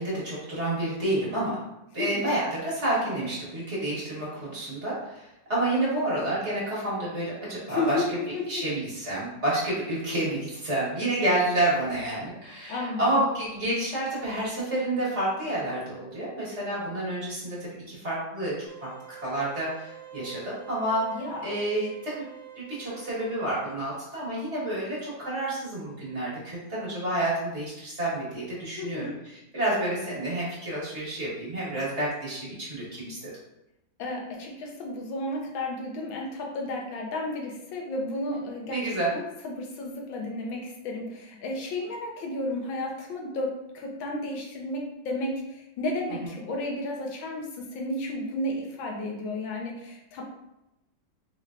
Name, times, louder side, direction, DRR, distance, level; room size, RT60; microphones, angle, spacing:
voice 1, 0.0-1.6 1.9-8.0 8.5-18.9 19.2-21.0 21.4-22.3 22.6-29.1 29.5-33.3 38.7-39.1, right 1 dB, 40° right, -7 dB, 1.6 m, -29 dB
voice 2, 2.0-2.4 7.7-8.7 12.7-13.0 21.1-21.6 28.8-29.1 34.0-38.8 39.1-50.2, left 2 dB, 90° left, 0 dB, 1.6 m, -33 dB
sound 1, 18.7-23.7, right 10 dB, 80° right, 1.5 m, -46 dB
4.3 x 3.2 x 2.4 m, 0.89 s
omnidirectional pair, 2.1 m